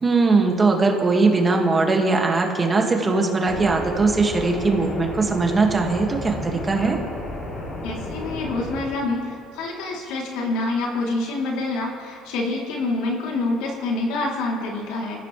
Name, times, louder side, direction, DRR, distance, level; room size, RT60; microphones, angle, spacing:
voice 1, 0.0-7.0, right 3 dB, 20° right, 1 dB, 2.0 m, -20 dB
sound 1, 3.5-8.8, left 1 dB, 40° left, 3.5 m, -33 dB
voice 2, 7.8-15.2, left 2 dB, 85° left, -2 dB, 3.3 m, -26 dB
26.5 x 15.5 x 3.4 m, 2.4 s
cardioid pair, 125°, 0 cm